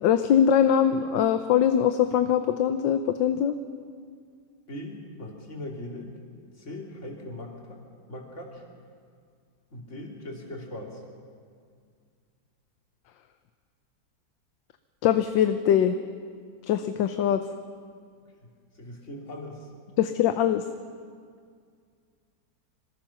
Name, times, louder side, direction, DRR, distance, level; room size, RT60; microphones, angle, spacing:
voice 1, 0.0-3.5 15.0-16.0 16.7-17.4 20.0-20.6, left 9 dB, 90° left, 9 dB, 1.5 m, -22 dB
voice 2, 4.7-6.2 6.6-7.8 8.1-8.6 9.7-11.0 18.4-18.5 18.7-19.7, left 1 dB, 40° left, -1 dB, 3.4 m, -39 dB
26.0 x 20.0 x 5.8 m, 2.1 s
omnidirectional pair, 1.9 m